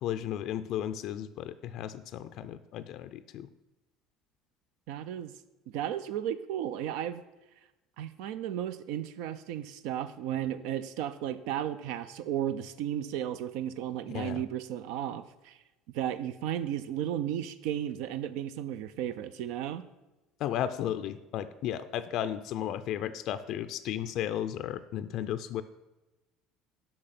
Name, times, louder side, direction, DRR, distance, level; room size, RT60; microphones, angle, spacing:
voice 1, 0.0-3.5 14.1-14.4 20.4-25.6, left 11 dB, 60° left, 12 dB, 0.4 m, -34 dB
voice 2, 4.9-5.3 5.7-7.2 8.0-15.6 15.9-19.8, right 10 dB, 75° right, 13 dB, 0.5 m, -34 dB
6.3 x 5.9 x 5.9 m, 1.0 s
supercardioid pair, 105°, 0 cm